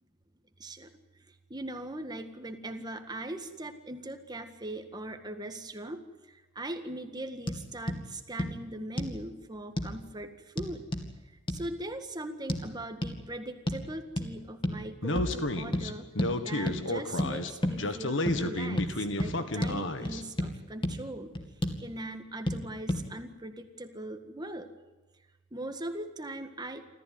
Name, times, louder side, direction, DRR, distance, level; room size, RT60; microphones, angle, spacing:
voice 1, 0.6-0.9 1.5-6.0 6.3-10.8 11.5-16.1 16.4-21.3 21.8-24.7 25.5-26.9, right 1 dB, 20° right, 7 dB, 1.8 m, -40 dB
sound 1, 7.5-7.6 7.9-8.0 8.4-8.5 9.0-9.2 9.8-9.9 10.6-11.1 11.5-11.6 12.5-12.6 13.0-13.2 13.7-13.8 14.2-14.3 14.6-14.8 15.2-15.4 15.7-15.9 16.2-16.3 16.7-16.8 17.2-17.3 17.6-17.8 18.3-18.4 18.8-18.9 19.2-19.3 19.6-19.8 20.1-20.5 20.8-20.9 21.4-21.8 22.5-22.6 22.9-23.0, left 1 dB, 25° left, 2.4 m, -30 dB
Speech, 15.0-20.2, left 1 dB, 90° left, 1.7 m, -32 dB
27.5 x 14.5 x 9.6 m, 1.2 s
head